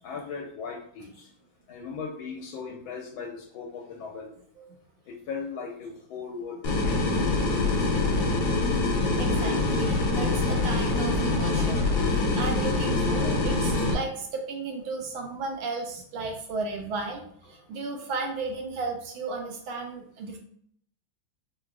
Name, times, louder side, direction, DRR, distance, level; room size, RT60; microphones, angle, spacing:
voice 1, 0.0-1.3 1.7-4.3 5.3-7.2 7.9-8.3 10.1-10.4 11.4-11.5 11.9-12.1 17.9-18.1, left 5 dB, 85° left, 0 dB, 1.4 m, -38 dB
sound 1, 6.6-13.9, left 2 dB, 70° left, 1.1 m, -25 dB
voice 2, 9.2-20.4, right 3 dB, 85° right, 2 dB, 1.4 m, -34 dB
4.5 x 2.3 x 2.3 m, 0.65 s
omnidirectional pair, 2.1 m